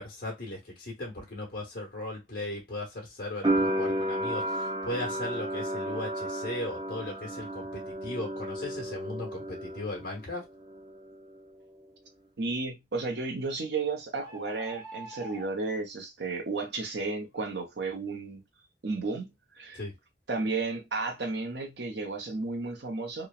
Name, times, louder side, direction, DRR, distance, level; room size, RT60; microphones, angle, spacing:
voice 1, 0.0-10.4 19.7-19.9, left 1 dB, 50° left, 1.1 m, -37 dB
sound 1, 3.4-10.2 10.5-11.4, right 1 dB, 25° right, 0.4 m, -32 dB
voice 2, 12.4-18.4 18.8-19.8 20.3-23.3, right 3 dB, 70° right, 0.8 m, -33 dB
sound 2, 14.2-15.5, right 2 dB, 15° left, 1.6 m, -43 dB
3.0 x 2.2 x 2.4 m
head